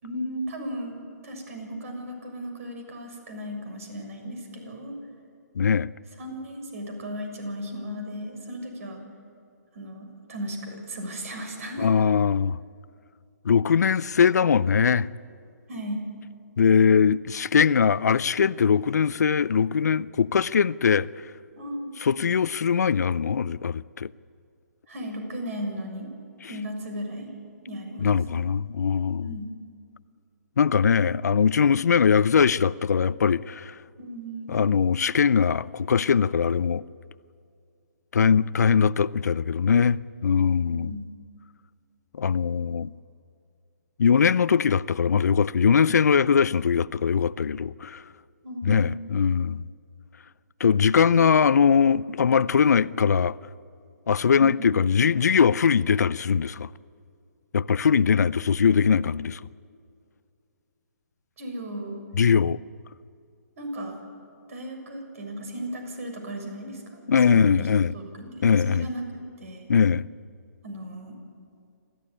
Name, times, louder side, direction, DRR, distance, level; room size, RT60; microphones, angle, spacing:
voice 1, 0.0-5.0 6.2-9.0 9.7-11.9 15.7-16.0 21.6-21.9 24.9-26.1 26.5-27.3 27.6-28.1 29.2-29.5 34.0-34.6 40.7-41.1 48.4-49.0 54.4-54.7 61.4-62.0 63.6-64.0 64.5-67.7 67.9-69.7 70.6-71.2, equal, 55° right, 6.7 m, -36 dB
voice 2, 5.6-5.9 11.8-12.6 13.4-15.1 16.6-21.1 22.0-24.1 28.0-29.4 30.6-33.8 34.5-36.8 38.1-41.0 42.1-42.9 44.0-48.0 48.6-49.6 50.6-53.4 54.1-56.7 57.5-59.4 62.1-62.6 67.1-67.9 68.4-68.9 69.7-70.1, left 6 dB, 75° left, 0.6 m, -21 dB
26.5 x 14.0 x 9.9 m
hypercardioid pair, 150°, 9 cm